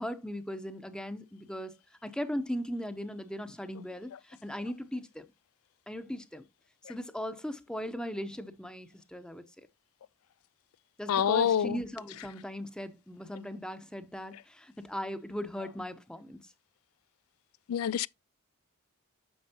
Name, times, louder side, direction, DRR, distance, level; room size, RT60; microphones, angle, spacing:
voice 1, 0.0-1.7 2.0-5.2 5.9-6.4 6.8-9.7 11.0-16.5, equal, 5° left, 0.6 m, -38 dB
voice 2, 11.1-11.8 17.7-18.1, left 9 dB, 70° left, 0.3 m, -26 dB
8.7 x 6.5 x 2.8 m
head